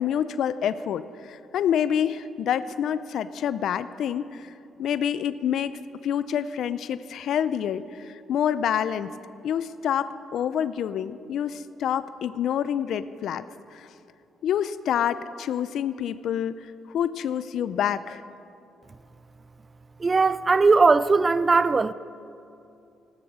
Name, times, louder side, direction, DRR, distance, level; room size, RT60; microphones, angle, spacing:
voice 1, 0.0-4.5 4.8-9.1 9.4-13.4 13.7-13.9 14.4-18.2, left 9 dB, 70° left, 0.4 m, -27 dB
voice 2, 20.0-21.9, right 4 dB, 30° right, 0.4 m, -19 dB
15.0 x 11.0 x 6.2 m
cardioid pair, 90°, 0 cm